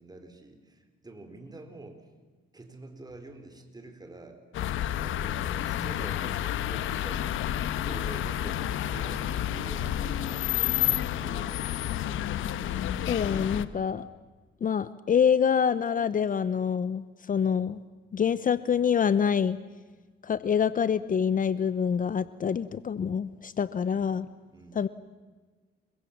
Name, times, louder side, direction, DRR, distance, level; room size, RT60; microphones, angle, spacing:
voice 1, 0.0-2.1 2.5-4.4 4.9-7.3 7.8-10.7 11.1-11.9 23.8-24.1 24.5-24.9, right 2 dB, 20° right, 6 dB, 4.3 m, -47 dB
sound 1, 4.5-13.7, left 11 dB, 80° left, 1.2 m, -30 dB
voice 2, 13.1-14.1 14.6-17.8 18.1-19.6 20.2-24.3 24.8-24.9, left 7 dB, 45° left, 16 dB, 0.8 m, -26 dB
28.5 x 23.0 x 7.4 m, 1.4 s
cardioid pair, 90°, 20 cm